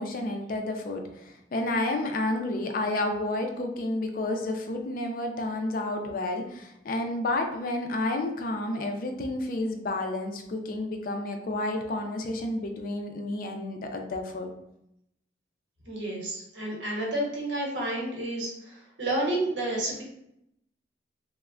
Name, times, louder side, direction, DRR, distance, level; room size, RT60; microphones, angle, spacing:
voice 1, 0.0-14.5, left 2 dB, 50° left, 4 dB, 0.4 m, -30 dB
voice 2, 15.9-20.0, right 1 dB, 80° right, -3 dB, 0.9 m, -30 dB
3.2 x 2.0 x 2.3 m, 0.78 s
head